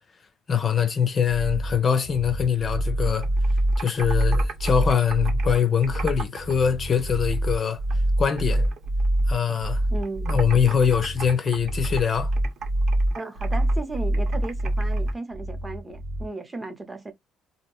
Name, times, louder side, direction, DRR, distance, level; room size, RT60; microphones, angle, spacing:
voice 1, 0.5-3.3 3.8-7.8 8.2-8.7 9.3-9.8 10.3-12.3, left 7 dB, 35° left, 0.5 m, -23 dB
sound 1, 1.3-16.3, right 1 dB, 80° right, 0.7 m, -25 dB
Computer keyboard, 3.0-6.6 6.8-8.1 8.4-9.7 10.0-15.1, right 6 dB, 55° right, 0.9 m, -39 dB
voice 2, 9.9-10.4 13.1-17.1, right 2 dB, 15° right, 0.7 m, -35 dB
2.6 x 2.1 x 2.9 m
cardioid pair, 125°, 0 cm